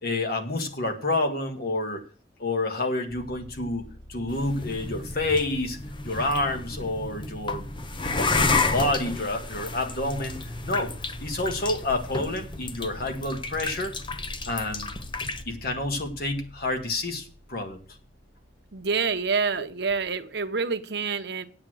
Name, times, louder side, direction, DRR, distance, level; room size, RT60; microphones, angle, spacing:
voice 1, 0.0-2.0 2.4-3.8 4.1-5.8 6.0-7.6 8.2-10.4 10.6-10.9 11.2-13.9 14.5-15.0 15.4-17.8 19.6-19.7, left 2 dB, 55° left, 5 dB, 1.7 m, -28 dB
sound 1, 3.1-19.7, left 1 dB, 5° right, 1.5 m, -45 dB
sound 2, 4.3-15.4, left 3 dB, 25° left, 0.7 m, -31 dB
voice 2, 18.7-21.4, right 5 dB, 65° right, 8 dB, 0.9 m, -27 dB
8.8 x 7.8 x 6.3 m, 0.39 s
head